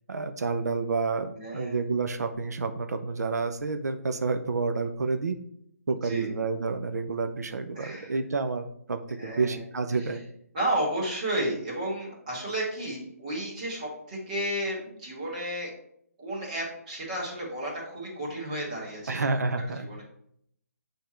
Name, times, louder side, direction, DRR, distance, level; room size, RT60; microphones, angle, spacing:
voice 1, 0.1-5.4 5.9-9.0 9.4-10.2 19.1-20.0, right 4 dB, 85° right, 8 dB, 0.7 m, -29 dB
voice 2, 1.3-1.8 6.0-6.3 7.7-8.2 9.2-9.6 9.9-10.2 10.5-15.7 16.2-20.0, right 1 dB, 25° right, -4 dB, 2.1 m, -33 dB
7.8 x 3.5 x 4.4 m, 0.71 s
hypercardioid pair, 175°, 9 cm